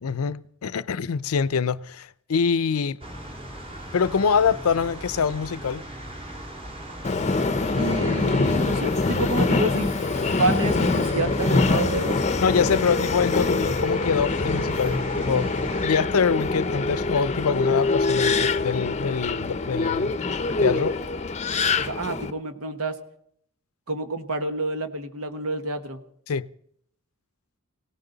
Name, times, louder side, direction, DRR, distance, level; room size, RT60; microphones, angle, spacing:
voice 1, 0.0-3.0 3.9-5.8 12.4-15.5 15.8-20.1 20.6-20.9 26.3-26.5, left 6 dB, 75° left, 0.5 m, -24 dB
sound 1, 3.0-15.9, equal, 25° right, 2.5 m, -36 dB
Subway metro underground, 7.0-22.3, left 3 dB, 35° left, 0.6 m, -24 dB
voice 2, 7.8-9.9 10.4-12.2 12.7-13.0 13.4-13.5 21.8-23.0 23.9-26.0, right 2 dB, 80° right, 1.5 m, -28 dB
18.5 x 17.5 x 4.0 m
head